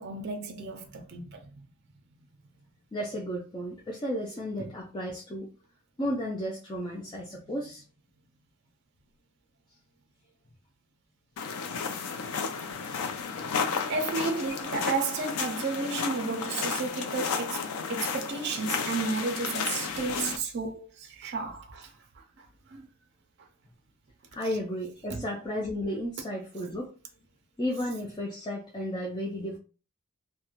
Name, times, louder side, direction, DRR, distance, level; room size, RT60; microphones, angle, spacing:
voice 1, 0.0-1.6 4.6-4.7 13.9-17.6 17.9-21.9 22.4-22.9 25.1-25.2, right 4 dB, 50° right, 0.4 m, -32 dB
voice 2, 2.9-5.5 6.0-7.8 14.5-14.6 24.3-26.9 27.6-29.6, equal, 20° left, 0.4 m, -33 dB
sound 1, 11.4-20.4, left 5 dB, 85° left, 0.4 m, -33 dB
2.3 x 2.1 x 2.9 m
head